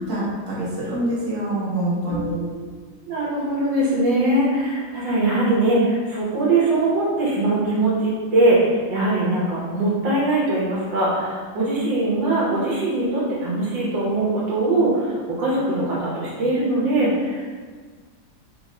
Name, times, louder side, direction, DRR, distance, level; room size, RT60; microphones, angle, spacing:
voice 1, 0.1-2.4, right 1 dB, 45° right, -8 dB, 1.3 m, -25 dB
voice 2, 2.1-2.7 3.1-17.5, right 2 dB, 75° right, -6 dB, 1.7 m, -21 dB
3.9 x 2.5 x 4.1 m, 1.5 s
omnidirectional pair, 2.1 m